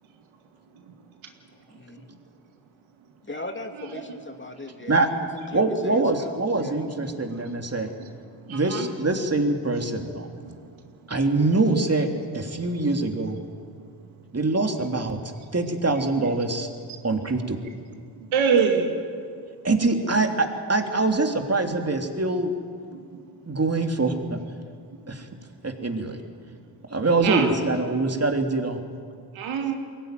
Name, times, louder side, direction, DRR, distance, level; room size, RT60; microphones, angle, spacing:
voice 1, 1.5-2.1 3.2-4.9 5.3-6.7, left 2 dB, 25° left, 4 dB, 2.7 m, -38 dB
voice 2, 5.5-7.9 8.5-10.3 11.1-12.1 12.3-13.4 14.3-15.2 15.5-16.7 17.0-17.6 19.6-22.5 23.5-24.4 25.1-25.3 25.6-26.2 26.9-28.8, right 3 dB, 30° right, 3 dB, 3.2 m, -24 dB
voice 3, 8.5-8.9 9.8-9.9 11.7-11.8 14.8-14.9 18.3-18.9 27.2-27.5 29.4-29.7, right 6 dB, 85° right, 3 dB, 2.2 m, -24 dB
22.5 x 17.0 x 9.4 m, 2.2 s
supercardioid pair, 40°, 47 cm